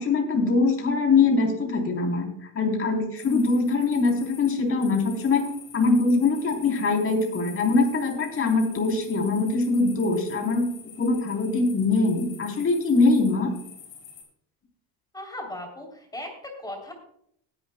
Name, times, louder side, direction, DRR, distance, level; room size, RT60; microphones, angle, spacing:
voice 1, 0.0-2.3 2.5-5.5 5.7-10.7 11.0-13.5, left 3 dB, 30° left, 1 dB, 3.7 m, -22 dB
sound 1, 3.2-14.2, left 7 dB, 55° left, 5.6 m, -47 dB
voice 2, 15.1-16.9, left 1 dB, 10° left, 1 dB, 3.5 m, -37 dB
19.5 x 11.0 x 2.3 m, 0.71 s
supercardioid pair, 110°, 43 cm